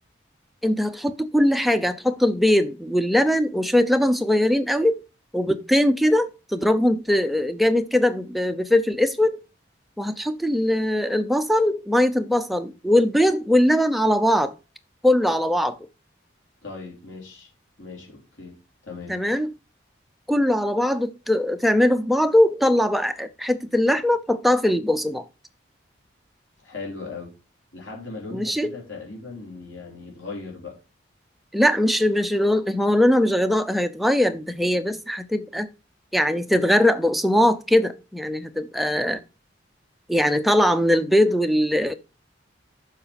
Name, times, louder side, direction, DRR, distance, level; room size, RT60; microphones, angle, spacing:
voice 1, 0.6-5.0 5.3-9.4 10.0-14.5 15.0-15.8 19.1-19.5 20.3-25.2 28.3-28.7 31.5-35.7 36.1-39.2 40.1-41.9, left 1 dB, ahead, 0.5 m, -21 dB
voice 2, 16.6-17.5 17.8-18.6 18.8-19.2 26.6-27.3 27.7-30.8, left 3 dB, 85° left, 3.6 m, -38 dB
7.2 x 5.0 x 5.2 m
head